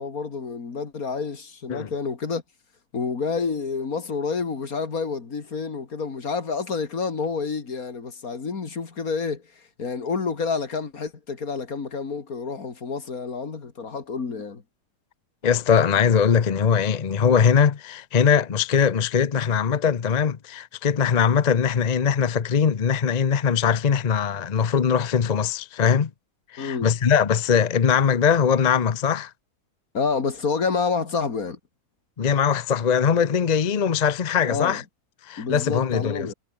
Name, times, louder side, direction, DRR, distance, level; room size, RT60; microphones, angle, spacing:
voice 1, 0.0-2.4 2.9-9.4 9.8-14.6 26.6-26.9 29.9-31.6 34.4-34.8 35.4-36.3, left 5 dB, 60° left, 2.7 m, -28 dB
voice 2, 15.4-26.1 26.5-29.3 32.2-34.8 35.3-36.3, left 7 dB, 40° left, 0.6 m, -21 dB
omnidirectional pair, 1.7 m